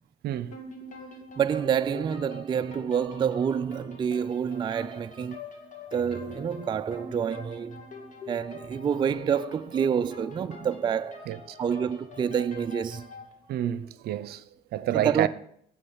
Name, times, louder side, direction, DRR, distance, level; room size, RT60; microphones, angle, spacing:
voice 1, 0.2-0.6 11.3-11.6 13.5-14.4 14.7-15.3, right 12 dB, 70° right, 0.7 m, -29 dB
sound 1, 0.5-13.3, left 4 dB, 50° left, 2.5 m, -45 dB
voice 2, 1.4-5.4 5.9-7.8 8.3-11.3 11.6-13.1 14.9-15.3, right 7 dB, 25° right, 0.3 m, -28 dB
9.9 x 7.0 x 7.3 m
cardioid pair, 110°, 17 cm